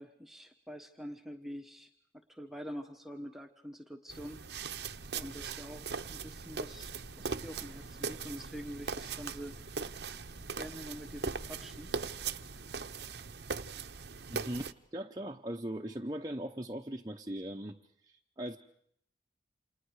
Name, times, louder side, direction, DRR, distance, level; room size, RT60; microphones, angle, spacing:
voice 1, 0.0-1.9 2.3-4.4 5.1-10.0 10.5-12.0, equal, ahead, 3 dB, 1.2 m, -46 dB
sound 1, 4.1-14.7, right 5 dB, 70° right, 0.9 m, -40 dB
sound 2, 4.9-14.1, equal, 80° left, 3.4 m, -55 dB
voice 2, 14.3-17.8 18.0-18.6, right 1 dB, 20° right, 2 dB, 0.9 m, -39 dB
29.5 x 28.0 x 4.9 m, 0.67 s
head